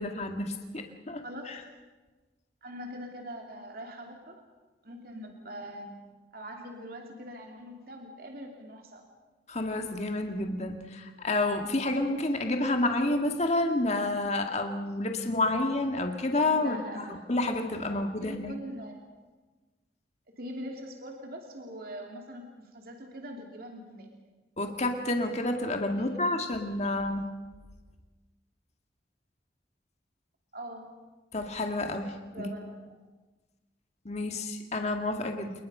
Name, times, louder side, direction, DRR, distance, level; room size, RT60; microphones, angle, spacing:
voice 1, 0.0-1.6 9.5-16.8 17.3-18.5 24.6-27.3 31.3-32.5 34.1-35.5, left 2 dB, 40° left, 4 dB, 1.9 m, -29 dB
voice 2, 1.2-1.6 2.6-4.4 4.8-6.0 6.3-9.0 16.4-17.2 17.9-19.0 20.4-24.1 25.9-26.2 26.9-27.0 30.5-30.9 32.3-32.9, equal, 55° right, 2 dB, 2.8 m, -43 dB
28.5 x 20.5 x 5.6 m, 1.3 s
head